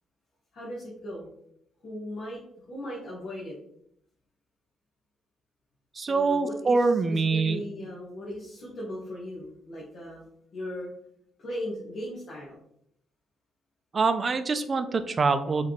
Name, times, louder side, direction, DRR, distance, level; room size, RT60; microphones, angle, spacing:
voice 1, 0.5-1.3 1.8-2.4 2.7-3.6 6.1-10.9 11.4-12.6, equal, 55° left, -6 dB, 1.3 m, -38 dB
voice 2, 6.0-7.6 13.9-15.7, right 4 dB, 35° right, 10 dB, 0.4 m, -24 dB
4.8 x 3.4 x 3.0 m, 0.74 s
cardioid pair, 90°, 0 cm